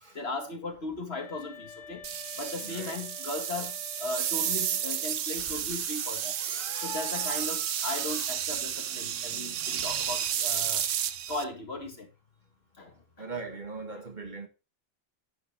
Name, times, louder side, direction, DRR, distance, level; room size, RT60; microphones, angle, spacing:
voice 1, 0.1-2.1 2.4-6.3 6.8-10.8 11.3-12.1 12.8-12.9, left 2 dB, 55° left, 2.2 m, -37 dB
sound 1, 1.1-5.3, left 5 dB, 80° left, 1.6 m, -49 dB
sound 2, 2.0-11.4, right 10 dB, 90° right, 1.1 m, -32 dB
voice 2, 2.6-3.0 5.4-5.8 13.2-14.5, right 4 dB, 40° right, 1.6 m, -40 dB
sound 3, 5.4-10.4, equal, 15° right, 3.4 m, -45 dB
10.0 x 7.9 x 3.3 m
omnidirectional pair, 1.2 m